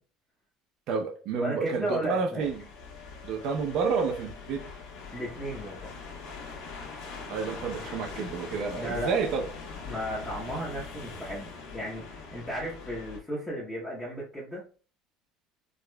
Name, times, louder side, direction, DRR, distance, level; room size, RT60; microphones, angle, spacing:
voice 1, 0.9-2.6 3.2-4.7 7.3-9.4, right 5 dB, 55° right, 0.6 m, -30 dB
voice 2, 1.4-2.5 5.1-5.9 8.7-9.1 9.8-14.7, equal, 10° left, 0.9 m, -34 dB
sound 1, 2.4-13.2, left 4 dB, 70° left, 1.1 m, -42 dB
4.7 x 2.3 x 2.2 m
cardioid pair, 155°, 0 cm